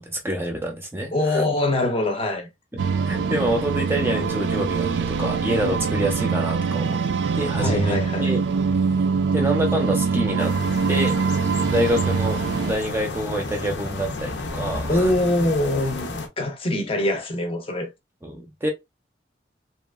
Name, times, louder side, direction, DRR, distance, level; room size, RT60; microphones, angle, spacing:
voice 1, 0.0-1.4 2.7-2.8 3.1-7.0 7.3-8.4 9.3-10.5 10.9-11.1 11.7-12.4 12.7-15.1 18.2-18.7, equal, 15° right, 0.5 m, -26 dB
voice 2, 1.1-2.5 7.6-8.3 14.9-16.1 16.4-17.9, left 1 dB, 30° left, 0.6 m, -23 dB
sound 1, 2.8-12.7, right 5 dB, 75° right, 0.4 m, -23 dB
sound 2, 10.4-16.3, left 3 dB, 80° left, 0.6 m, -32 dB
2.8 x 2.3 x 2.2 m
head